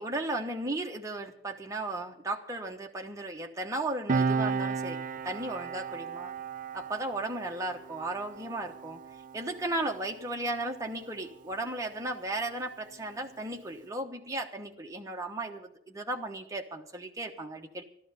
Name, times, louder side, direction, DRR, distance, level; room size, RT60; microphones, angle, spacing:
voice 1, 0.0-6.3 6.7-9.0 9.3-17.8, right 2 dB, 15° right, 3 dB, 1.1 m, -35 dB
Piano, 4.1-11.1 11.4-11.6, right 5 dB, 40° right, 0.5 m, -34 dB
12.5 x 12.5 x 6.6 m, 0.74 s
head